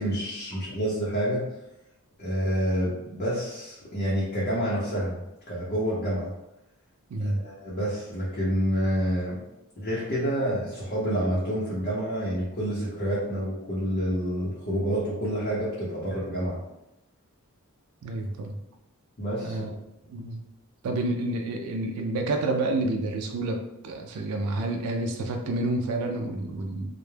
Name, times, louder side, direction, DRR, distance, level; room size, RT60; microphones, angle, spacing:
voice 1, 0.0-1.4 2.2-5.2 5.5-6.3 7.2-9.4 9.8-16.6 19.2-19.6, equal, 40° left, -8 dB, 0.6 m, -28 dB
voice 2, 7.1-7.4 18.0-18.6 19.4-19.7 20.1-20.4 20.8-26.9, right 2 dB, 85° right, 3 dB, 0.4 m, -29 dB
2.2 x 2.0 x 3.1 m, 0.89 s
head